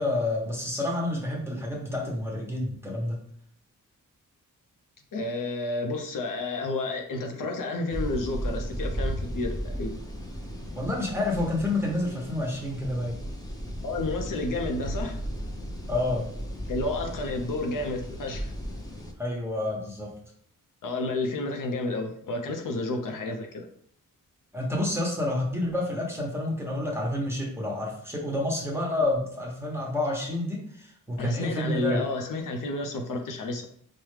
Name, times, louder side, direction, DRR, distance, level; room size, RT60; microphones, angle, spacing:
voice 1, 0.0-3.2 10.8-13.2 15.9-16.3 19.2-20.1 24.5-32.0, left 1 dB, 5° right, -2 dB, 1.0 m, -29 dB
voice 2, 5.1-10.0 13.8-15.2 16.7-18.5 20.8-23.6 31.2-33.6, left 2 dB, 70° left, 3 dB, 0.6 m, -31 dB
sound 1, 7.9-19.1, equal, 10° left, 0.6 m, -35 dB
4.8 x 2.2 x 3.2 m, 0.64 s
wide cardioid pair, 125°, 33 cm